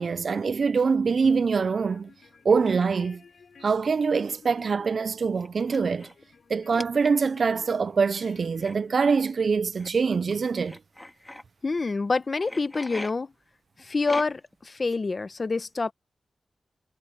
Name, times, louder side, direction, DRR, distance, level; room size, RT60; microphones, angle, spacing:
voice 1, 0.0-2.1 2.5-3.2 3.6-6.1 6.5-10.8, right 5 dB, 65° right, 0.3 m, -24 dB
sound 1, 1.4-9.5, left 5 dB, 75° left, 6.7 m, -54 dB
sound 2, 2.6-2.9 4.0-4.2 4.5-4.6 5.4-6.2 6.7-7.5 8.6-8.8 9.8-9.9 10.6-11.4 12.4-13.1 14.0-14.6, left 1 dB, 15° left, 2.0 m, -40 dB
voice 2, 11.6-13.3 13.8-15.9, left 3 dB, 40° left, 0.9 m, -27 dB
wide cardioid pair, 110°, 0 cm